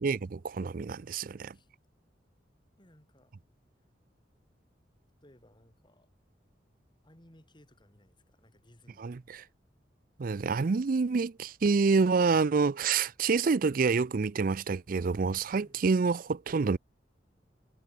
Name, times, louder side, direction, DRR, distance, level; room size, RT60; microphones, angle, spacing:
voice 1, 0.0-1.5 9.0-9.4 10.2-16.8, right 4 dB, 50° right, 0.5 m, -27 dB
voice 2, 2.8-3.3 5.2-6.1 7.0-9.5 15.5-16.0, left 1 dB, 25° left, 4.0 m, -61 dB
head